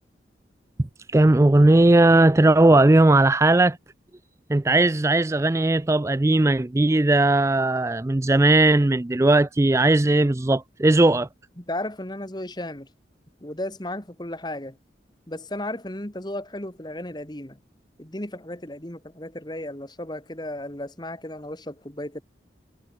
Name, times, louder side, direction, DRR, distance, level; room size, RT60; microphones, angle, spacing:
voice 1, 1.1-3.8 4.5-11.3, right 2 dB, 15° right, 0.4 m, -18 dB
voice 2, 11.6-12.9 13.4-14.8 15.3-17.6 18.0-22.2, left 1 dB, 25° left, 1.9 m, -34 dB
head